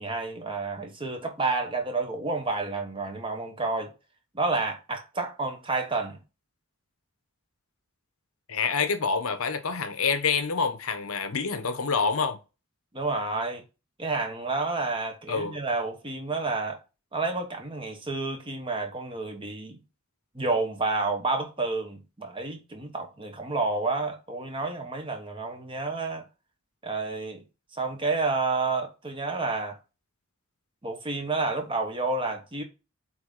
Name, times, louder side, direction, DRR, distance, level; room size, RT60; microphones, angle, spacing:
voice 1, 0.0-3.9 4.3-6.2 12.9-13.6 14.0-16.8 17.1-19.8 20.3-26.3 26.8-27.4 27.8-29.8 30.8-32.6, right 3 dB, 25° right, 1.2 m, -30 dB
voice 2, 8.5-12.4 15.3-15.6, left 5 dB, 85° left, 0.9 m, -27 dB
8.0 x 3.5 x 3.8 m
head